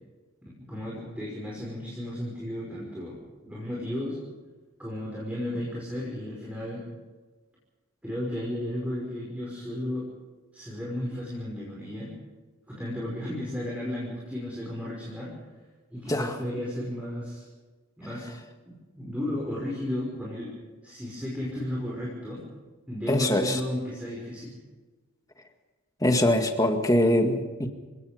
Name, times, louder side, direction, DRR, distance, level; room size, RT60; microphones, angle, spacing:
voice 1, 0.4-4.2 4.8-6.8 8.0-10.1 10.5-12.1 12.7-15.4 15.9-17.5 18.0-18.3 18.7-20.5 20.8-22.4 22.9-24.5, left 1 dB, 5° right, -5 dB, 5.6 m, -34 dB
voice 2, 23.1-23.6 26.0-27.7, left 1 dB, 15° left, 5 dB, 2.0 m, -23 dB
29.0 x 17.5 x 5.2 m, 1.3 s
head